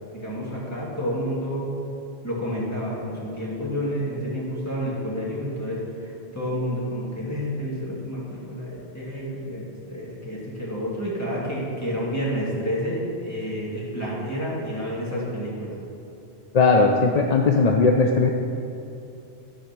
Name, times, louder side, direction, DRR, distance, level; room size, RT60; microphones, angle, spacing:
voice 1, 0.1-1.7 2.2-15.8, equal, 15° left, -7 dB, 2.5 m, -29 dB
voice 2, 16.5-18.3, left 4 dB, 50° left, 2 dB, 0.5 m, -18 dB
12.5 x 4.9 x 5.9 m, 2.7 s
omnidirectional pair, 1.1 m